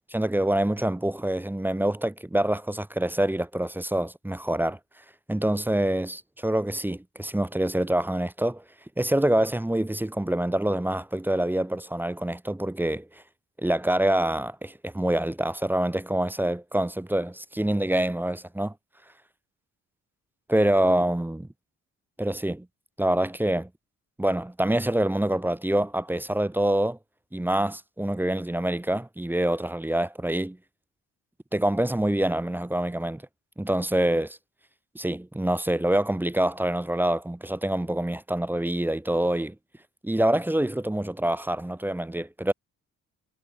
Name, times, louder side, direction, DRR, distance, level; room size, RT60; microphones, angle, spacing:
voice 1, 0.1-4.8 5.3-8.6 9.0-13.1 13.6-18.7 20.5-21.5 22.2-22.7 23.0-23.7 24.2-27.0 27.3-30.6 31.5-33.2 33.6-34.4 34.9-39.5 40.0-42.5, right 1 dB, 5° right, 0.9 m, -26 dB
cardioid pair, 90°, 30 cm